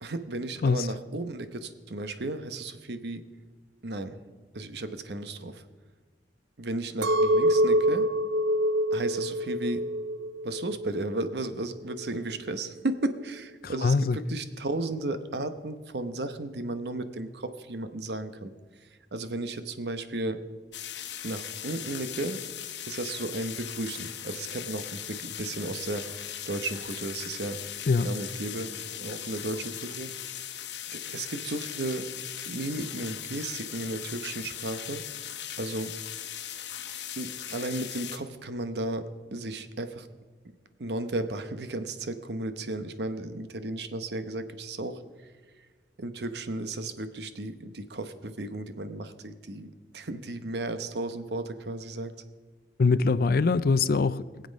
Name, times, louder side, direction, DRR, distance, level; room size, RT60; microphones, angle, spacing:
voice 1, 0.0-3.2 3.8-4.2 4.5-5.6 6.6-8.1 8.9-9.9 10.4-18.5 19.1-20.4 21.2-22.4 22.9-27.6 28.0-30.1 30.9-32.1 32.4-35.0 35.6-35.9 37.2-40.1 40.8-45.0 46.0-52.1, right 2 dB, 65° right, 0.9 m, -34 dB
Chink clink, 7.0-11.3 11.7-12.3, equal, 85° right, 0.6 m, -26 dB
voice 2, 13.8-14.2 27.9-28.1 52.8-54.5, left 4 dB, 55° left, 0.4 m, -23 dB
sound 1, 20.7-38.2, left 10 dB, 85° left, 1.0 m, -39 dB
22.5 x 7.8 x 5.3 m
head